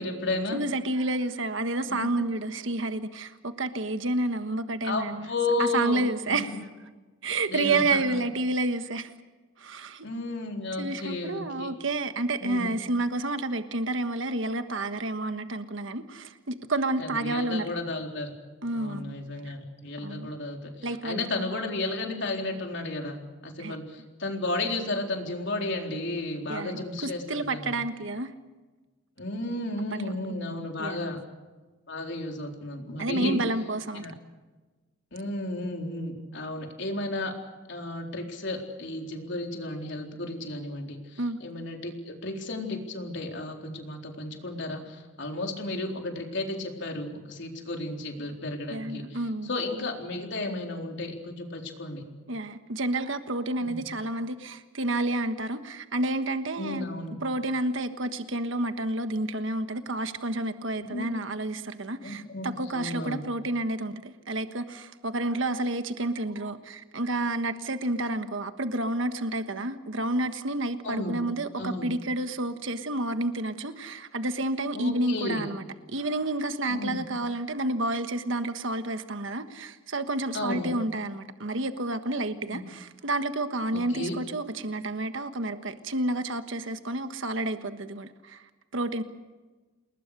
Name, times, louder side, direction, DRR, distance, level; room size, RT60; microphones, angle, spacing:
voice 1, 0.0-0.6 1.9-2.1 4.8-6.6 7.5-8.2 10.0-11.7 12.4-12.7 17.0-18.3 18.7-27.7 29.2-31.2 31.9-33.4 33.9-34.1 35.1-37.3 37.7-52.0 53.6-53.8 56.6-57.2 60.9-61.1 62.0-63.2 70.8-71.2 71.6-71.9 74.7-75.5 76.7-77.0 80.3-80.7 82.5-82.6 83.7-84.2, left 2 dB, 55° left, 2 dB, 4.0 m, -33 dB
voice 2, 0.5-5.3 5.6-6.6 7.2-9.1 9.6-10.1 10.8-17.7 18.6-19.1 19.4-19.5 20.0-20.3 20.8-21.5 23.6-23.8 26.5-28.3 29.9-30.1 30.5-31.1 33.0-34.1 41.2-41.4 48.7-49.5 52.3-56.9 57.2-88.4 88.7-89.0, right 2 dB, 60° right, 9 dB, 1.4 m, -30 dB
29.0 x 20.0 x 6.8 m, 1.3 s
head